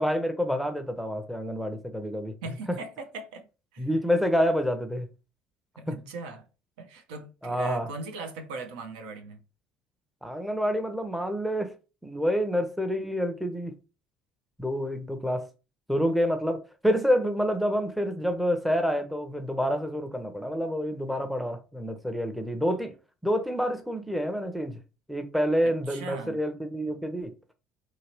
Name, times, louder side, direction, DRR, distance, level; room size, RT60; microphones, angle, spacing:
voice 1, 0.0-2.4 2.7-2.8 3.8-5.1 5.9-6.0 7.4-7.9 10.2-11.7 12.0-13.7 14.6-15.5 15.9-22.9 23.2-24.8 25.1-27.3, equal, ahead, 0.6 m, -28 dB
voice 2, 2.4-3.5 3.7-3.9 5.8-6.5 6.8-9.4 25.9-26.4, right 4 dB, 70° right, 0.6 m, -39 dB
2.9 x 2.8 x 2.9 m
hypercardioid pair, 60°, 5 cm